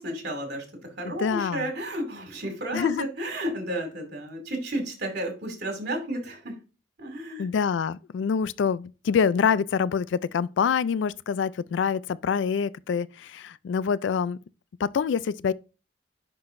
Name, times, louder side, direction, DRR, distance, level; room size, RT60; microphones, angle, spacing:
voice 1, 0.0-6.6 7.0-7.5, right 1 dB, 60° right, 2.5 m, -32 dB
voice 2, 1.0-1.7 2.7-3.1 7.4-14.4 14.8-15.5, left 6 dB, 70° left, 0.3 m, -26 dB
10.5 x 3.8 x 2.5 m
head